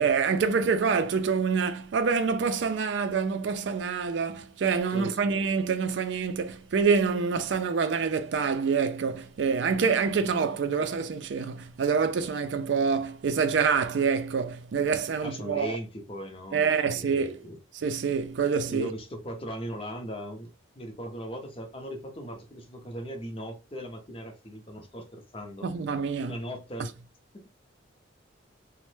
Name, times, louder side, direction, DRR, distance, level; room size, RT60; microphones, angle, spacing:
voice 1, 0.0-15.7 16.5-17.4 17.7-18.9 25.6-26.3, right 5 dB, 65° right, 0.3 m, -26 dB
voice 2, 4.9-5.5 10.2-10.4 15.2-17.6 18.5-20.5 20.8-25.7 26.2-26.9 27.3-27.5, equal, 30° left, 0.6 m, -39 dB
3.1 x 2.1 x 3.1 m
head